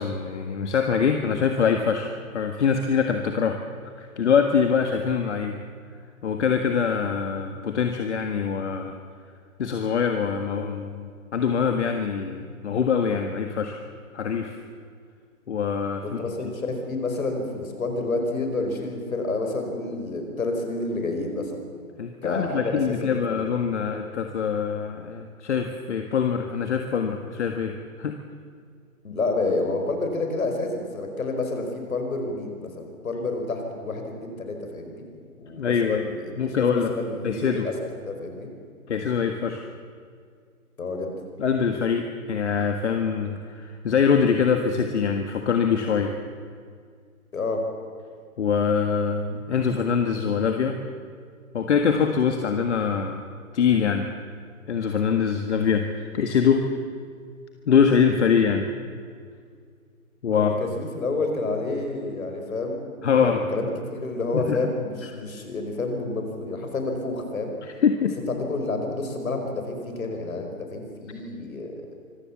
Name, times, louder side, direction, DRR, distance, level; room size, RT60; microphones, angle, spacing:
voice 1, 0.0-5.6 6.2-9.0 9.6-13.8 14.1-14.6 15.5-16.5 22.0-28.1 35.6-36.1 36.4-36.9 37.2-37.7 38.9-39.7 41.4-46.1 48.4-50.8 51.5-53.2 53.5-54.1 54.7-56.6 57.7-58.7 60.2-60.5 63.0-63.5 64.3-64.6 67.6-68.1, left 6 dB, 50° left, 5 dB, 1.7 m, -24 dB
voice 2, 16.0-21.6 22.2-23.1 29.0-35.1 35.4-37.7 38.0-38.5 40.8-41.1 47.3-47.6 60.3-67.5 68.3-71.7, left 2 dB, 65° left, 4 dB, 5.0 m, -29 dB
25.5 x 15.5 x 7.3 m, 2.1 s
figure-of-eight pair, 135°, 44 cm